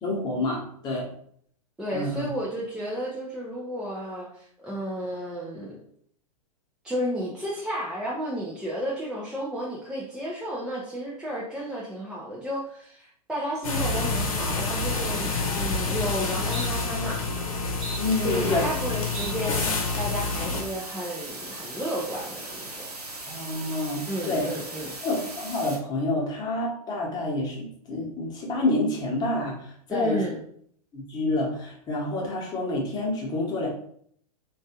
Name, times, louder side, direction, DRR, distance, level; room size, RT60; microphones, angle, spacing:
voice 1, 0.0-1.0 1.9-2.3 18.0-18.6 23.3-24.5 25.0-30.2 30.9-33.7, left 2 dB, 20° left, -2 dB, 1.0 m, -28 dB
voice 2, 1.8-5.8 6.8-17.2 18.2-22.9 24.1-24.9 29.9-30.4, equal, 5° right, -6 dB, 0.4 m, -32 dB
sound 1, 13.6-20.6, left 3 dB, 60° left, 0.8 m, -28 dB
sound 2, 15.4-15.5 15.9-16.1 16.5-16.7 17.2-17.5 17.8-18.8 19.1-19.3 19.8-20.1, right 3 dB, 50° right, 1.0 m, -40 dB
sound 3, 18.0-25.8, right 2 dB, 85° right, 0.7 m, -39 dB
3.0 x 2.4 x 2.9 m, 0.64 s
figure-of-eight pair, 100°, 19 cm